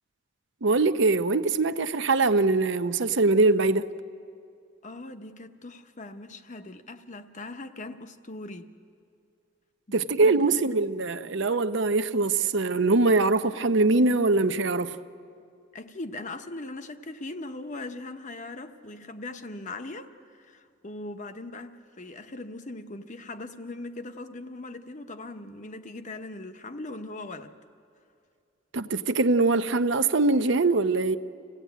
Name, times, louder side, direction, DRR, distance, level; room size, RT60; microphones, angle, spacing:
voice 1, 0.6-3.9 9.9-15.0 28.7-31.2, right 3 dB, 65° right, 0.7 m, -23 dB
voice 2, 4.8-8.7 9.9-10.5 15.7-27.5, left 2 dB, 40° left, 1.0 m, -40 dB
26.5 x 16.5 x 9.2 m
head